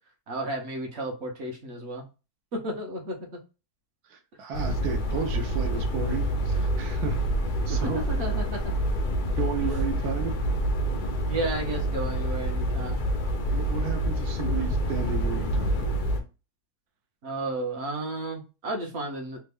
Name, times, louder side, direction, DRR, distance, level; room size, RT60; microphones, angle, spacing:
voice 1, 0.3-2.0 2.5-3.4 7.7-8.7 11.2-13.0 14.6-14.7 17.2-19.4, right 2 dB, 55° right, 0.9 m, -33 dB
voice 2, 4.1-7.2 7.7-8.0 9.4-10.3 13.5-15.9, right 5 dB, 85° right, 1.2 m, -33 dB
sound 1, 4.5-16.2, right 1 dB, 80° left, 0.4 m, -27 dB
3.3 x 2.1 x 3.3 m
omnidirectional pair, 1.6 m